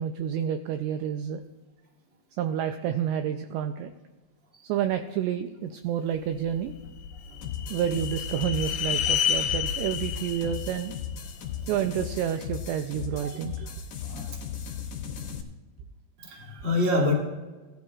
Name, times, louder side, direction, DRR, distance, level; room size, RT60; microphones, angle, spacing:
voice 1, 0.0-1.4 2.4-3.9 4.6-6.8 7.7-10.9 11.7-13.7, right 9 dB, 85° right, 7 dB, 2.5 m, -29 dB
sound 1, 6.7-11.9, left 8 dB, 75° left, 2.6 m, -31 dB
sound 2, 7.4-15.4, left 8 dB, 60° left, 2.0 m, -37 dB
voice 2, 14.0-14.4 16.2-17.1, left 1 dB, 25° right, -2 dB, 1.8 m, -27 dB
18.5 x 12.5 x 2.4 m, 1.2 s
omnidirectional pair, 5.3 m